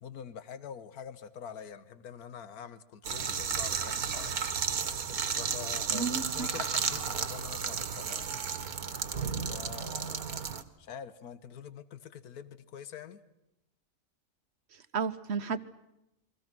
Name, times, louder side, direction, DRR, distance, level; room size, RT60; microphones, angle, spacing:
voice 1, 0.0-4.4 5.3-8.3 9.5-10.3 10.8-13.2, left 8 dB, 75° left, 14 dB, 1.6 m, -45 dB
sound 1, 3.0-10.6, right 6 dB, 75° right, 1.9 m, -33 dB
voice 2, 5.9-6.5 14.9-15.6, right 5 dB, 50° right, 12 dB, 1.2 m, -32 dB
29.0 x 23.5 x 6.1 m, 0.91 s
omnidirectional pair, 1.6 m